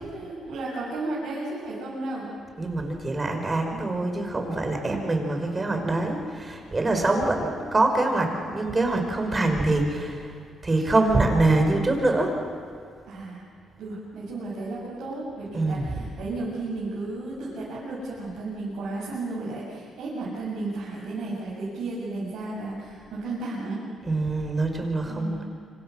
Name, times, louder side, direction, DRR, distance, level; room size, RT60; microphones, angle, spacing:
voice 1, 0.0-2.3 4.8-5.2 6.9-7.2 9.2-9.5 13.1-13.4 13.8-23.8 25.1-25.5, right 2 dB, 75° right, -7 dB, 7.2 m, -33 dB
voice 2, 2.6-10.3 10.6-12.4 15.5-15.9 24.1-25.4, right 2 dB, 25° right, 4 dB, 5.5 m, -24 dB
26.5 x 26.0 x 6.5 m, 2.2 s
cardioid pair, 90°, 0 cm